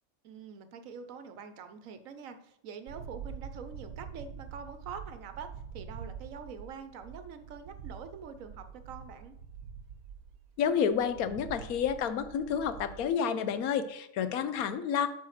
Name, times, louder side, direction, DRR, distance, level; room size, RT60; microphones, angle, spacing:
voice 1, 0.2-5.5 5.7-9.4, right 6 dB, 70° right, 10 dB, 1.1 m, -45 dB
sound 1, 2.9-13.1, right 7 dB, 90° right, 1.2 m, -46 dB
voice 2, 10.6-15.1, left 7 dB, 80° left, 12 dB, 1.2 m, -30 dB
8.2 x 4.1 x 6.5 m, 0.79 s
omnidirectional pair, 1.5 m